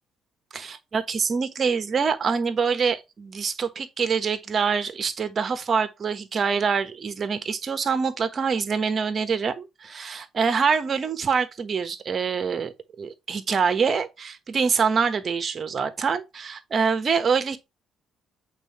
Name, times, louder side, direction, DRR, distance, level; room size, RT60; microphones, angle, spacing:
voice 1, 0.5-17.6, right 5 dB, 45° right, 1.2 m, -25 dB
8.2 x 4.3 x 3.1 m
figure-of-eight pair, 45°, 0 cm